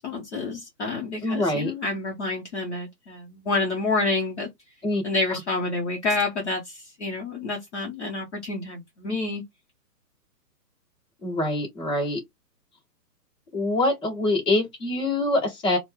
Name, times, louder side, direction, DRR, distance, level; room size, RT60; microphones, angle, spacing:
voice 1, 0.0-4.5 5.0-9.4, left 3 dB, 45° left, 0.8 m, -28 dB
voice 2, 1.2-1.7 4.8-5.0 5.3-5.4 11.2-12.2 13.5-15.8, left 2 dB, 20° left, 1.3 m, -24 dB
2.9 x 2.1 x 3.5 m
hypercardioid pair, 175°, 49 cm